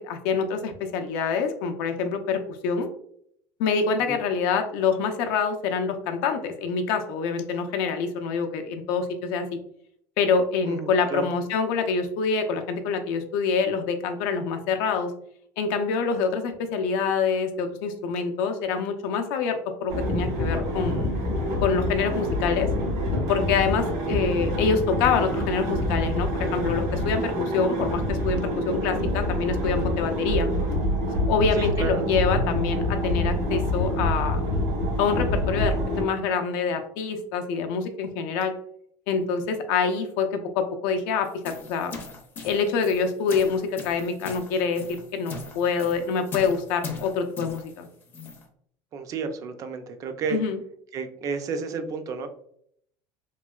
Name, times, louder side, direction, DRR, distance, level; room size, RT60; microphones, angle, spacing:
voice 1, 0.0-2.9 3.6-9.6 10.2-15.1 15.6-21.1 21.6-22.7 23.3-30.5 31.1-34.4 35.0-38.5 39.1-41.9 42.4-44.8 45.1-47.9 50.3-50.6, left 5 dB, 75° left, 6 dB, 0.5 m, -26 dB
voice 2, 10.7-11.3 31.5-32.1 48.9-50.4 50.9-52.3, right 5 dB, 35° right, 8 dB, 0.4 m, -31 dB
sound 1, 19.9-36.0, left 1 dB, 70° right, 1.3 m, -26 dB
sound 2, 41.2-48.5, left 3 dB, 20° left, 0.5 m, -40 dB
3.0 x 2.8 x 2.3 m, 0.67 s
cardioid pair, 150°, 10 cm